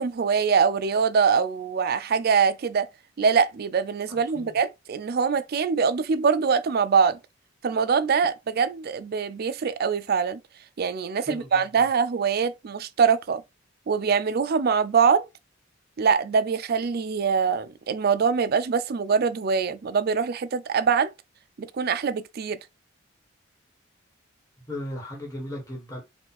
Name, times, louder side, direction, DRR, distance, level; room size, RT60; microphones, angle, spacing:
voice 1, 0.0-2.9 3.2-7.2 7.6-10.4 10.8-13.4 13.9-15.3 16.0-21.1 21.6-22.6, right 6 dB, 50° right, 0.4 m, -23 dB
voice 2, 4.1-4.6 11.3-11.5 11.8-11.9 24.7-26.0, left 1 dB, 15° left, 1.3 m, -36 dB
4.3 x 2.4 x 4.1 m
head